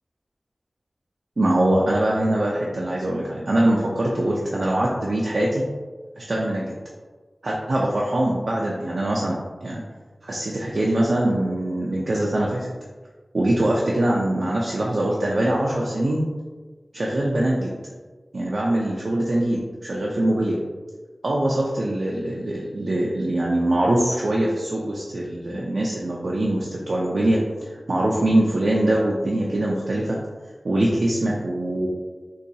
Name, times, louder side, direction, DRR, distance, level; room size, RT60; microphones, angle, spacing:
voice 1, 1.4-5.6 6.2-6.7 7.4-9.8 10.2-12.7 13.3-16.2 16.9-17.7 18.3-20.6 21.2-30.2 30.6-31.9, right 1 dB, 75° right, -4 dB, 0.4 m, -23 dB
3.8 x 2.3 x 2.6 m, 1.4 s
wide cardioid pair, 65°, 0 cm